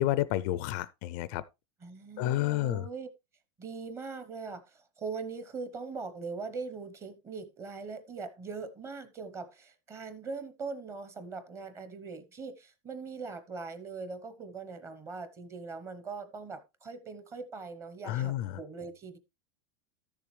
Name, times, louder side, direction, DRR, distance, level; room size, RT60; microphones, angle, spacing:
voice 1, 0.0-1.4 2.2-2.8 18.1-18.5, left 14 dB, 40° left, 0.4 m, -30 dB
voice 2, 1.8-3.1 3.6-19.2, right 4 dB, 20° right, 0.9 m, -41 dB
13.0 x 6.9 x 3.2 m
supercardioid pair, 165°, 15 cm